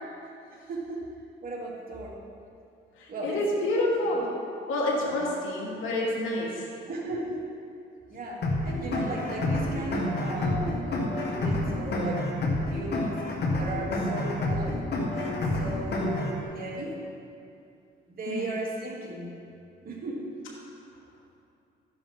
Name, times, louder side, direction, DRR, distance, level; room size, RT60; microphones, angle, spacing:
voice 1, 0.5-1.1 1.4-2.2 3.1-3.4 5.0-5.2 6.9-7.5 8.1-12.2 12.6-13.2 13.5-14.8 15.1-17.0 18.1-19.3 19.8-20.3, right 1 dB, 45° right, -5 dB, 3.1 m, -36 dB
voice 2, 3.0-4.3 4.7-6.7 18.3-18.5, left 1 dB, 85° left, -4 dB, 2.7 m, -28 dB
sound 1, 8.4-16.4, left 1 dB, 55° left, 1.9 m, -28 dB
13.5 x 10.0 x 3.8 m, 2.5 s
cardioid pair, 90°, 20 cm